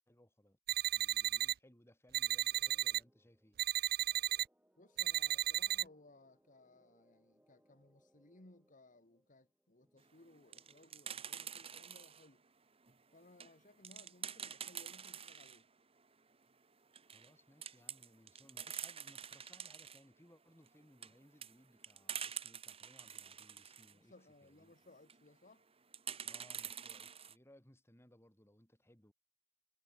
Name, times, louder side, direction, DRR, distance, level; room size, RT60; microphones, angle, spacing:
voice 1, 0.0-3.6 17.1-24.1 24.4-24.7 26.2-29.1, left 1 dB, 15° left, 3.5 m, -65 dB
sound 1, 0.7-1.5 2.1-3.0 3.6-4.4 5.0-5.8, right 14 dB, 55° right, 0.4 m, -34 dB
sound 2, 2.5-11.0, equal, 5° right, 6.8 m, -75 dB
voice 2, 4.8-12.4 13.1-15.7 23.9-25.7, left 2 dB, 45° left, 2.1 m, -63 dB
sound 3, 10.2-12.3 12.8-15.6 16.0-16.1 16.3-16.4 16.8-17.3 17.6-20.0 20.7-23.9 24.9-25.2 25.9-27.3, right 8 dB, 30° right, 1.6 m, -47 dB
head